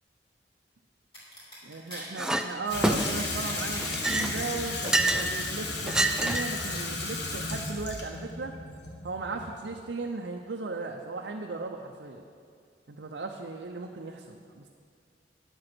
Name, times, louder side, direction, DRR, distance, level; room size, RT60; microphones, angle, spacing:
sound 1, 1.1-3.9 4.2-4.7, left 1 dB, 30° left, 3.2 m, -45 dB
voice 1, 1.6-8.6 9.0-12.2 12.9-14.7, right 3 dB, 75° right, 1 dB, 0.6 m, -37 dB
Chink clink, 2.2-2.5 2.8-3.3 3.8-5.3 5.9-6.6, right 1 dB, 5° right, 0.3 m, -27 dB
Water tap faucet / Sink (filling or washing), 2.7-9.7, left 2 dB, 70° left, 1.4 m, -34 dB
9.9 x 7.8 x 6.0 m, 2.2 s
head